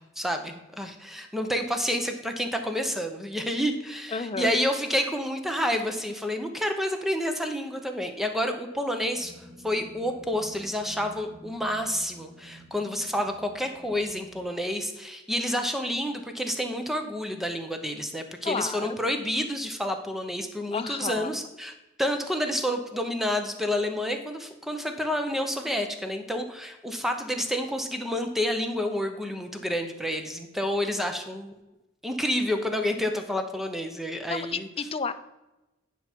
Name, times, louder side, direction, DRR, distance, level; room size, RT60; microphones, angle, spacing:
voice 1, 0.0-21.7 22.0-31.5 32.0-34.7, equal, ahead, 5 dB, 0.8 m, -29 dB
voice 2, 4.1-4.5 18.4-19.0 20.7-21.3 34.3-35.1, left 5 dB, 30° left, 11 dB, 0.5 m, -31 dB
sound 1, 9.2-14.4, right 1 dB, 20° right, 2.0 m, -50 dB
10.0 x 5.8 x 4.5 m, 0.99 s
head